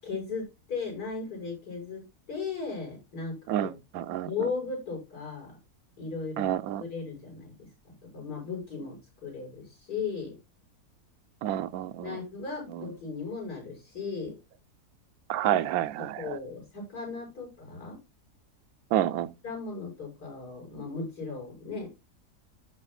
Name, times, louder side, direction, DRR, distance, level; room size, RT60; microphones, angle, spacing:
voice 1, 0.0-3.7 4.2-5.6 6.0-6.5 6.8-10.4 12.0-14.4 15.4-15.5 16.0-18.0 19.4-22.0, left 4 dB, 90° left, 7.1 m, -37 dB
voice 2, 3.5-4.3 6.4-6.8 11.4-12.2 12.7-12.9 15.3-16.4 18.9-19.3, right 12 dB, 70° right, 1.0 m, -29 dB
14.0 x 6.8 x 2.3 m
omnidirectional pair, 1.7 m